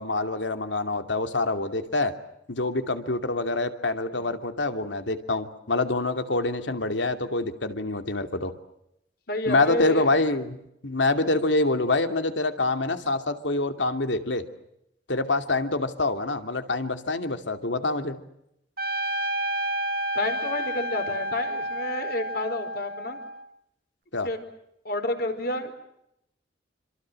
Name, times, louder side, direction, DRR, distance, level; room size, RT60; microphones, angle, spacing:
voice 1, 0.0-2.1 2.5-8.5 9.5-10.6 10.8-14.4 15.1-18.2 24.1-24.3, left 2 dB, 85° left, 8 dB, 2.7 m, -26 dB
voice 2, 9.3-10.1 11.2-11.3 20.1-23.2 24.2-24.4 24.8-25.7, left 1 dB, 55° left, 7 dB, 4.8 m, -30 dB
Trumpet, 18.8-23.5, right 1 dB, 55° right, 1.6 m, -30 dB
27.5 x 26.0 x 7.6 m, 0.81 s
head